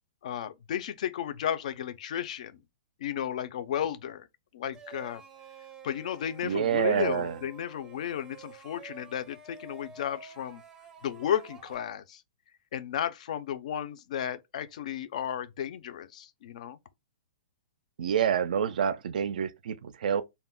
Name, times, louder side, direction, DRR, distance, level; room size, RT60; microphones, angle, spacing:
voice 1, 0.2-2.6 3.0-4.3 4.5-5.2 5.8-10.6 11.0-12.2 12.7-16.8, left 9 dB, 50° left, 0.3 m, -33 dB
sound 1, 4.7-11.8, right 5 dB, 10° right, 0.5 m, -50 dB
voice 2, 6.4-7.4 18.0-20.2, right 8 dB, 65° right, 0.3 m, -27 dB
2.2 x 2.0 x 3.5 m
hypercardioid pair, 170°, 5 cm